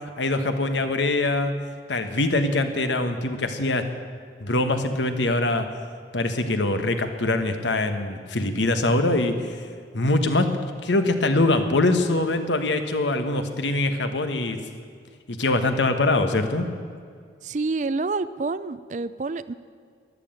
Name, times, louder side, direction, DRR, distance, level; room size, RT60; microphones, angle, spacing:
voice 1, 0.2-1.5 1.9-3.8 4.4-5.7 6.1-9.6 9.9-14.6 15.3-16.7, left 2 dB, 85° left, 7 dB, 1.3 m, -23 dB
voice 2, 17.4-19.5, right 3 dB, 40° right, 15 dB, 0.4 m, -28 dB
13.5 x 11.0 x 8.9 m, 2.1 s
head